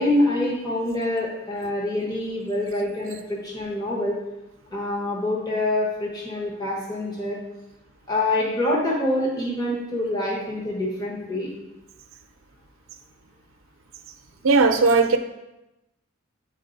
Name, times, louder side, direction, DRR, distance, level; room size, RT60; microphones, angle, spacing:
voice 1, 0.0-4.1 4.7-7.4 8.1-11.5, left 1 dB, 20° left, -4 dB, 1.2 m, -25 dB
voice 2, 14.4-15.2, right 4 dB, 70° right, 7 dB, 0.6 m, -17 dB
8.4 x 4.1 x 3.9 m, 0.95 s
head